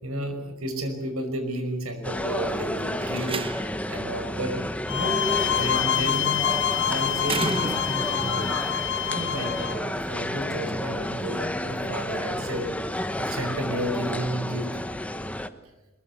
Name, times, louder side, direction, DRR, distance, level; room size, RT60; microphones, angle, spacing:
voice 1, 0.0-3.3 3.9-4.6 4.9-6.5 6.8-8.5 9.1-12.7 13.2-14.6, right 1 dB, 85° right, 7 dB, 5.6 m, -32 dB
sound 1, 2.0-15.5, left 1 dB, 5° left, 1.0 m, -31 dB
Slam, 2.9-3.9 5.5-5.9 7.2-8.2, right 3 dB, 25° right, 0.9 m, -32 dB
sound 2, 4.9-9.8, left 10 dB, 60° left, 0.8 m, -26 dB
22.0 x 22.0 x 8.2 m, 1.0 s
head